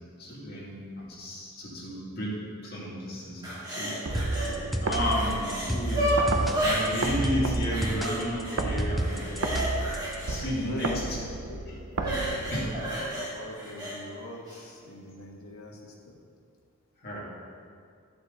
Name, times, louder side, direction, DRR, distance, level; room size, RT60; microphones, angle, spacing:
voice 1, 0.2-4.0 4.3-4.5 4.8-6.1 6.6-9.4 10.2-11.0 11.7-11.8 12.5-12.7 17.0-17.2, equal, 45° left, -6 dB, 2.4 m, -32 dB
sound 1, 3.4-4.5 4.9-7.1 7.7-8.6 8.9-11.0 11.9-14.0 14.5-14.6, right 1 dB, 20° right, 2.1 m, -31 dB
sound 2, 4.1-10.2, equal, ahead, 0.4 m, -33 dB
sound 3, 4.1-13.1, right 2 dB, 70° right, 0.7 m, -32 dB
voice 2, 9.1-10.0 10.5-11.6 12.0-16.2, left 1 dB, 75° left, -1 dB, 1.5 m, -43 dB
12.0 x 7.8 x 4.0 m, 2.3 s
head